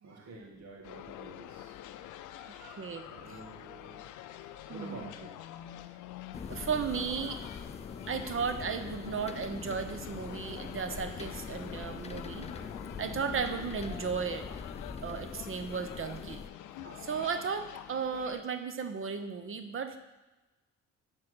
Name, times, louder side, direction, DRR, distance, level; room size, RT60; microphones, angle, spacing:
voice 1, 0.0-4.0 4.6-5.7, right 2 dB, 65° right, 0 dB, 2.0 m, -50 dB
sound 1, 0.8-18.4, left 13 dB, 85° left, 0.5 m, -46 dB
voice 2, 4.7-5.1 6.5-7.4 8.1-12.7 13.0-14.5 15.0-16.4 16.8-20.0, right 6 dB, 45° right, 8 dB, 0.8 m, -35 dB
sound 2, 6.3-16.5, left 5 dB, 20° left, 0.5 m, -43 dB
sound 3, 8.4-13.4, left 2 dB, 5° right, 1.2 m, -57 dB
7.4 x 4.4 x 6.2 m, 1.1 s
cardioid pair, 90°, 30 cm